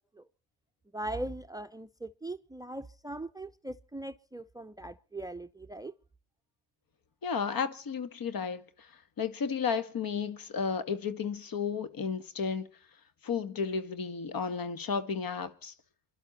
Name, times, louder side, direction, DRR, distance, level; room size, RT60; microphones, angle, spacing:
voice 1, 0.9-5.9, right 1 dB, 10° right, 0.8 m, -40 dB
voice 2, 7.2-8.9 9.2-12.7 13.2-15.7, left 6 dB, 45° left, 1.8 m, -33 dB
27.5 x 12.0 x 4.2 m
hypercardioid pair, 55°, 46 cm